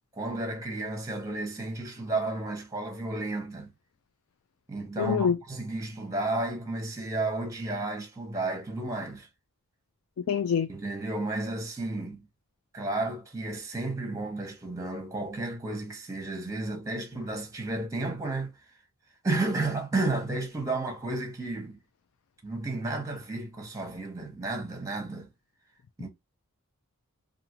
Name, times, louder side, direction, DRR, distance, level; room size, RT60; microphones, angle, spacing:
voice 1, 0.2-3.7 4.7-9.3 10.7-12.2 12.7-18.5 19.2-21.8 22.4-25.3 26.0-26.1, right 2 dB, 15° right, 0.9 m, -32 dB
voice 2, 5.0-5.4 10.3-10.7, left 7 dB, 65° left, 0.3 m, -25 dB
2.6 x 2.5 x 2.8 m
head